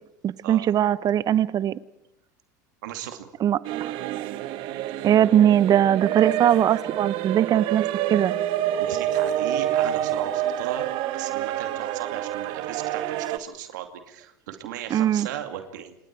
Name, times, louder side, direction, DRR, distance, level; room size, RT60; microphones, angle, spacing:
voice 1, 0.2-1.8 3.4-3.9 5.0-8.3 14.9-15.3, right 10 dB, 40° right, 17 dB, 1.0 m, -20 dB
voice 2, 2.8-3.3 8.8-16.0, right 11 dB, 75° right, 6 dB, 2.5 m, -36 dB
sound 1, 3.6-13.4, right 12 dB, 60° right, 1.4 m, -27 dB
29.0 x 27.0 x 4.7 m, 0.85 s
hypercardioid pair, 90°, 10 cm